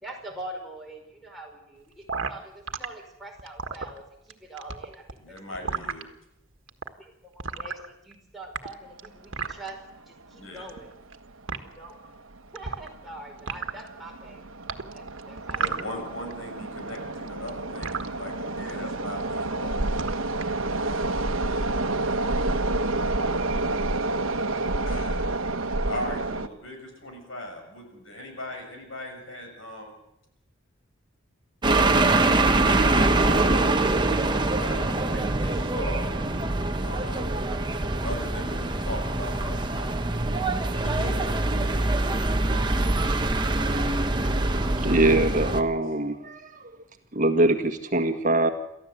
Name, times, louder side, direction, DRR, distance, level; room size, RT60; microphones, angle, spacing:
voice 1, 0.0-5.4 5.7-6.0 7.0-9.8 10.1-10.9 11.6-12.1 12.4-14.4 14.9-15.8, right 1 dB, ahead, 1 dB, 5.2 m, -43 dB
sound 1, 2.1-2.9 3.4-4.3 4.6-6.0 6.7-6.9 7.4-8.1 8.4-9.7 10.6-11.2 11.5-11.6 12.6-13.1 13.4-13.9 14.7-16.3 16.6-18.1 18.7-18.9 19.2-19.5 19.8-20.5, right 5 dB, 70° right, 1.6 m, -32 dB
voice 2, 5.2-6.0 10.3-10.6 15.6-20.1 21.5-21.6 22.5-22.7 24.8-25.4 25.9-30.0 32.1-36.2 36.8-37.4 38.0-39.9 40.7-41.3, left 1 dB, 80° left, 4 dB, 6.4 m, -39 dB
sound 2, 9.6-9.7 9.9-10.0 10.8-11.0 11.3-11.4 12.0-12.4 12.8-26.5, right 2 dB, 90° right, 1.1 m, -29 dB
sound 3, 31.6-45.6, right 2 dB, 20° right, 1.1 m, -24 dB
voice 3, 44.8-46.7 47.1-48.5, right 2 dB, 40° right, 6 dB, 1.7 m, -23 dB
29.0 x 14.0 x 8.0 m, 0.83 s
head